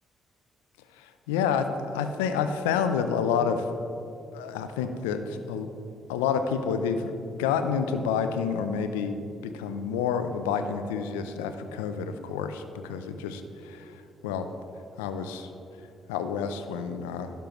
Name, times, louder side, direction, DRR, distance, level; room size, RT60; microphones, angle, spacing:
voice 1, 0.9-3.6 4.3-5.7 6.1-14.5 15.0-15.5 16.1-17.3, left 6 dB, 85° left, 9 dB, 0.5 m, -29 dB
11.5 x 11.0 x 3.1 m, 2.6 s
hypercardioid pair, 50°, 0 cm